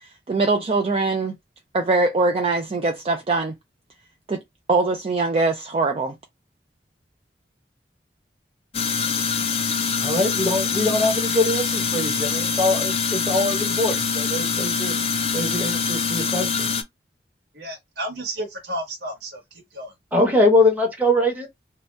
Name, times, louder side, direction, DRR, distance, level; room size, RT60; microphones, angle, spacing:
voice 1, 0.3-1.4 1.7-3.5 4.3-4.4 4.7-6.1, right 3 dB, 35° right, 0.4 m, -22 dB
sound 1, 8.7-16.8, left 5 dB, 35° left, 0.4 m, -24 dB
voice 2, 10.0-14.9 15.3-16.7 20.1-21.5, left 1 dB, 10° right, 0.8 m, -22 dB
voice 3, 17.5-19.4 19.7-19.9, right 1 dB, 75° right, 1.1 m, -32 dB
2.8 x 2.3 x 3.1 m
head